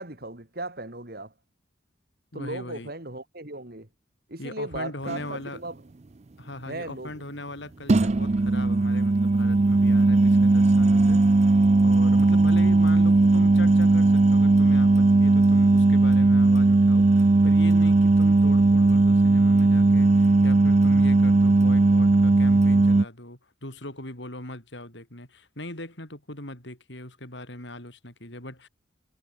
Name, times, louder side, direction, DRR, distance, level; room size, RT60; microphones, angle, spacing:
voice 1, 0.0-1.3 2.3-3.9 4.3-5.8 6.7-7.1, right 2 dB, 50° right, 2.7 m, -36 dB
voice 2, 2.3-2.9 4.4-5.6 6.4-28.7, left 1 dB, 65° left, 7.3 m, -40 dB
sound 1, 5.1-5.3 7.9-23.0, right 2 dB, 35° right, 0.4 m, -18 dB
head